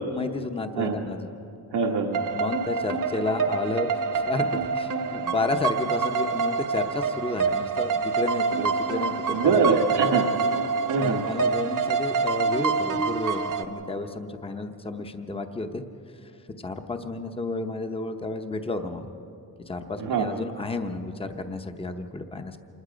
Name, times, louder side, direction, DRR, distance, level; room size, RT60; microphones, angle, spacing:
voice 1, 0.1-1.2 2.3-9.5 11.0-15.8 16.2-16.3 16.6-19.1 19.7-22.6, left 3 dB, 15° left, 7 dB, 0.8 m, -31 dB
voice 2, 1.7-2.2 9.3-10.2 10.9-11.3 20.0-20.3, right 5 dB, 90° right, 0 dB, 1.4 m, -23 dB
sound 1, 2.1-13.6, right 5 dB, 55° right, 1.0 m, -26 dB
27.0 x 20.5 x 5.1 m, 2.9 s
wide cardioid pair, 170°, 38 cm